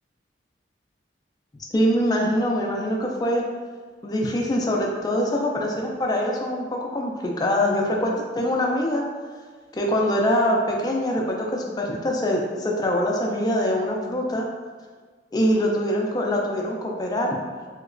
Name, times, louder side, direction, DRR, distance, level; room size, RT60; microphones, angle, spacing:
voice 1, 1.7-3.4 4.0-9.0 9.7-14.5 15.3-17.4, equal, 20° left, -1 dB, 0.3 m, -24 dB
3.0 x 2.8 x 2.5 m, 1.5 s
head